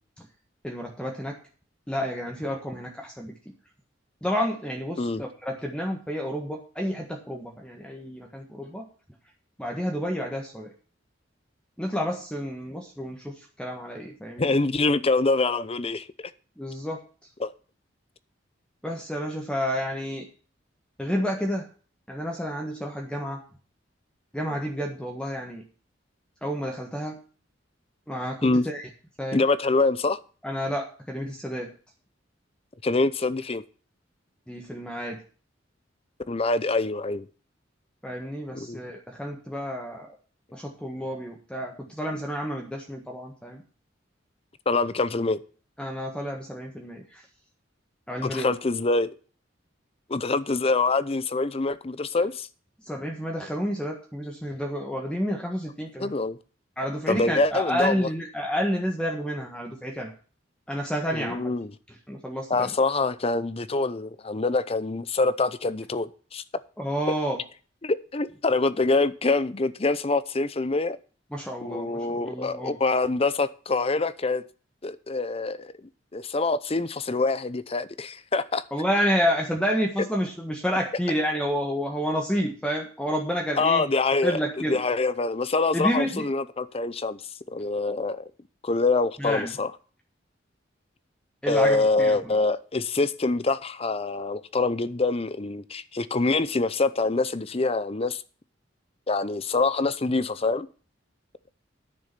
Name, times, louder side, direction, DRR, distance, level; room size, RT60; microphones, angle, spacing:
voice 1, 0.6-1.3 1.9-3.3 4.2-8.8 9.6-10.7 11.8-14.5 16.6-17.0 18.8-20.3 21.0-21.7 22.1-23.4 24.3-25.6 26.4-27.2 28.1-28.9 29.2-29.4 30.4-31.7 34.5-35.2 38.0-40.1 40.5-43.6 45.8-47.2 48.1-48.5 52.8-56.1 56.8-60.1 60.7-61.5 62.1-62.7 66.8-67.4 71.3-72.8 78.7-83.9 84.2-84.8 85.7-86.2 89.2-89.5 91.4-92.2, equal, 5° left, 1.5 m, -30 dB
voice 2, 14.4-16.1 17.4-17.5 28.4-28.6 29.3-30.2 32.8-33.6 36.3-37.3 38.5-38.8 44.7-45.4 48.2-49.1 50.1-52.5 56.0-56.4 57.1-58.1 61.1-61.7 62.5-66.4 67.8-71.0 71.6-74.4 74.8-75.7 76.1-78.6 83.6-84.4 84.7-87.2 87.5-88.3 88.6-89.7 91.5-98.2 99.1-100.7, left 3 dB, 30° left, 0.7 m, -25 dB
9.9 x 6.9 x 6.8 m
head